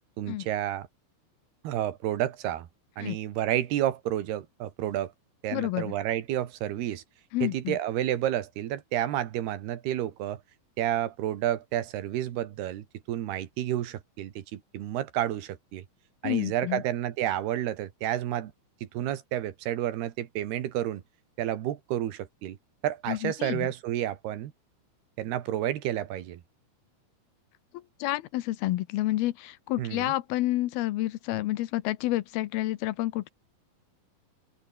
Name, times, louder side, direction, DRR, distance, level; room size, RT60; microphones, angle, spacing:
voice 1, 0.2-0.9 1.6-2.7 3.0-5.1 5.4-7.0 7.4-10.4 10.8-15.8 16.2-18.5 18.8-21.0 21.4-22.6 22.8-24.5 25.2-26.4 29.8-30.1, right 12 dB, 90° right, 3.7 m, -30 dB
voice 2, 5.5-5.9 7.3-7.8 16.2-16.8 23.1-23.7 27.7-33.3, left 16 dB, 85° left, 2.9 m, -29 dB
open air
omnidirectional pair, 4.5 m